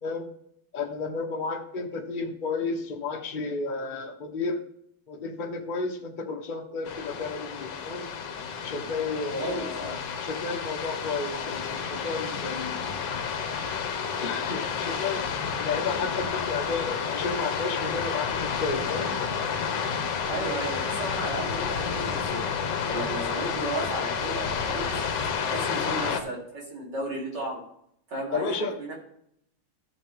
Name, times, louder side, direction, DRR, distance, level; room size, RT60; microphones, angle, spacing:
voice 1, 0.7-4.6 5.1-8.1 8.6-13.0 14.2-15.2 15.5-19.1 28.3-28.7, left 4 dB, 30° left, 2 dB, 1.0 m, -32 dB
sound 1, 6.9-26.2, left 6 dB, 60° left, 1.5 m, -30 dB
voice 2, 9.4-9.9 20.3-22.4 22.8-25.0 25.4-27.6 28.1-28.9, right 2 dB, 50° right, -4 dB, 4.1 m, -34 dB
14.0 x 7.2 x 3.6 m, 0.71 s
omnidirectional pair, 2.3 m